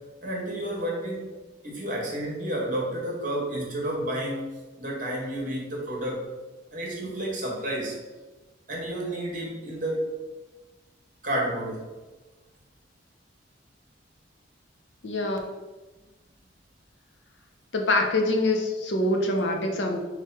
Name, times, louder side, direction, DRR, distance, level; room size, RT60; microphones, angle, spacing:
voice 1, 0.2-1.3 1.6-4.5 4.8-6.2 6.7-8.0 8.7-10.1 11.2-11.8, right 1 dB, 45° right, -2 dB, 1.3 m, -30 dB
voice 2, 15.0-15.4 17.7-20.0, left 2 dB, 75° left, 2 dB, 0.7 m, -25 dB
4.6 x 2.4 x 4.5 m, 1.2 s
head